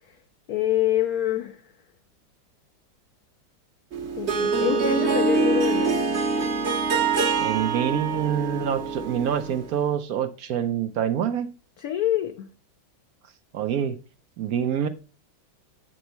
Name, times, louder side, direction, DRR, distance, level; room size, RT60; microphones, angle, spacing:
voice 1, 0.5-1.6 4.2-6.2 11.8-12.5, left 11 dB, 70° left, 0.9 m, -26 dB
Harp, 3.9-9.7, right 4 dB, 45° right, 1.0 m, -25 dB
voice 2, 7.4-11.5 13.5-14.0 14.4-14.9, right 9 dB, 70° right, 0.9 m, -26 dB
8.0 x 6.2 x 3.0 m
omnidirectional pair, 2.1 m